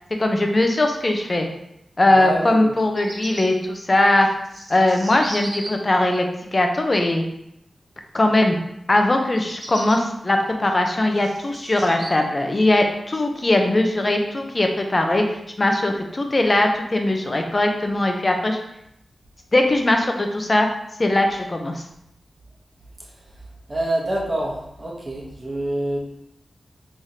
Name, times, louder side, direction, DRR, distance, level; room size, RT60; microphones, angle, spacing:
voice 1, 0.2-1.5 2.0-4.3 4.7-6.3 6.5-7.2 8.1-8.6 8.9-15.2 15.6-18.6 19.5-20.7 21.0-21.8, left 1 dB, 40° left, 3 dB, 0.6 m, -20 dB
voice 2, 2.2-2.7 23.7-26.0, right 1 dB, 30° right, -2 dB, 1.0 m, -26 dB
Bird vocalization bird call bird song, 2.6-3.4 4.2-5.7 9.2-10.0 10.6-12.1, right 1 dB, 60° right, 1.2 m, -36 dB
3.6 x 3.2 x 2.8 m, 0.80 s
cardioid pair, 50°, 0 cm